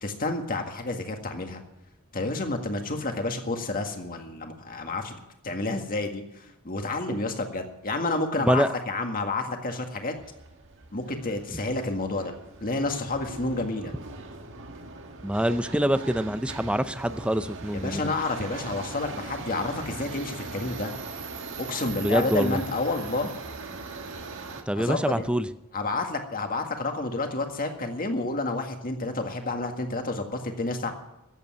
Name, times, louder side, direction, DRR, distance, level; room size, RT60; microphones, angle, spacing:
voice 1, 0.0-1.6 2.1-10.1 10.9-12.3 12.6-13.9 17.7-20.9 21.6-23.3 24.8-25.3 25.7-30.9, left 2 dB, 40° left, 4 dB, 1.9 m, -30 dB
Subway metro underground, 10.2-24.6, right 3 dB, 60° right, 1.6 m, -40 dB
voice 2, 15.2-18.0 22.0-22.6 24.7-25.5, equal, 5° right, 12 dB, 0.5 m, -25 dB
14.0 x 8.3 x 9.3 m, 0.91 s
head